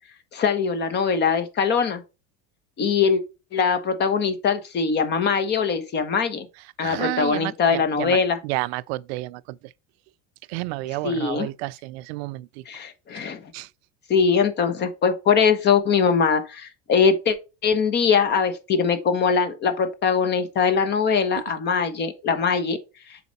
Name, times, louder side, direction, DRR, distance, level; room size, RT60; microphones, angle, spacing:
voice 1, 0.3-2.0 2.8-3.2 3.5-6.5 6.8-8.4 11.0-11.5 12.7-13.4 14.1-17.4 17.6-22.8, left 6 dB, 35° left, 1.2 m, -22 dB
voice 2, 6.8-9.6 10.5-12.5 13.5-13.7, right 20 dB, 85° right, 0.5 m, -30 dB
7.0 x 4.4 x 4.1 m
cardioid pair, 145°, 31 cm